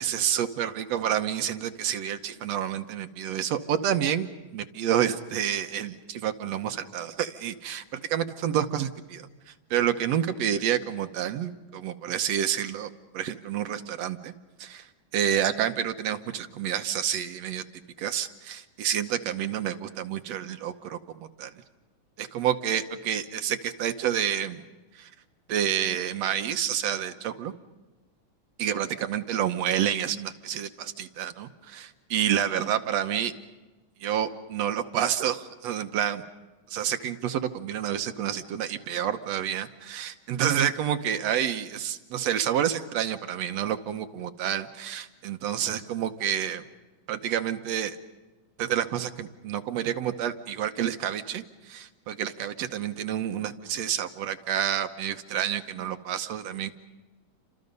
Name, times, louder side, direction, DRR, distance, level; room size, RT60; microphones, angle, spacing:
voice 1, 0.0-4.3 4.5-9.2 9.7-14.3 14.6-14.8 15.1-17.6 18.0-21.5 22.2-24.6 25.0-25.1 25.5-27.5 28.6-33.3 34.0-36.2 36.7-46.6 47.1-48.0 48.6-56.7, right 10 dB, 70° right, 8 dB, 2.1 m, -29 dB
30.0 x 26.0 x 5.4 m, 1.2 s
omnidirectional pair, 3.3 m